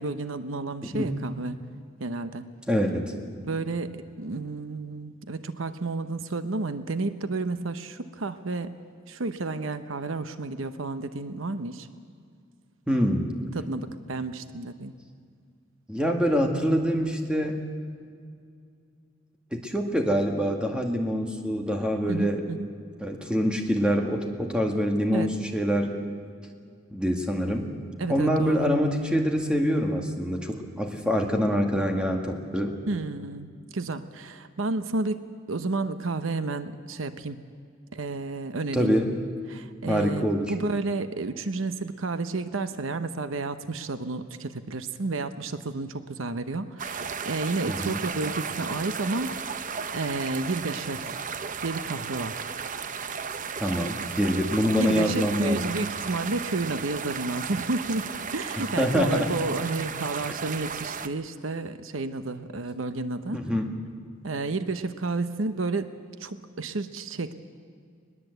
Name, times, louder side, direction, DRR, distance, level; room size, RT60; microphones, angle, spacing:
voice 1, 0.0-1.6 2.0-2.4 3.4-8.7 9.1-11.9 13.5-14.9 22.1-22.7 25.1-25.3 28.0-28.7 32.9-35.2 35.5-37.4 37.9-38.9 39.5-49.6 49.9-51.2 51.6-52.5 54.8-63.4 64.2-65.9 66.2-67.3, right 3 dB, 80° right, 10 dB, 0.9 m, -31 dB
voice 2, 2.7-3.1 12.9-13.3 15.9-17.6 19.5-22.4 23.0-25.9 26.9-27.7 28.1-32.8 38.7-39.1 39.9-40.5 47.7-48.0 53.6-55.6 58.6-59.4 63.3-63.7, equal, 5° right, 2 dB, 2.0 m, -25 dB
sound 1, 46.8-61.1, right 6 dB, 40° right, 0.7 m, -34 dB
21.0 x 20.5 x 8.1 m, 2.2 s
head